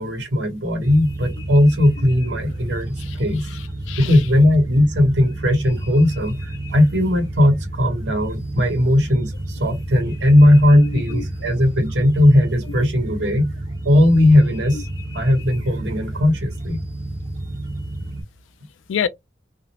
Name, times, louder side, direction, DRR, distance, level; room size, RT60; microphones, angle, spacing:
voice 1, 0.0-3.4 4.0-6.4 6.7-13.5 13.8-14.8 15.1-16.8, left 1 dB, 75° right, 1.0 m, -17 dB
sound 1, 0.8-18.2, right 1 dB, 20° right, 0.9 m, -31 dB
voice 2, 3.4-4.2 10.7-11.2 14.7-14.8 18.9-19.1, left 8 dB, 90° left, 0.3 m, -28 dB
2.4 x 2.0 x 2.8 m
head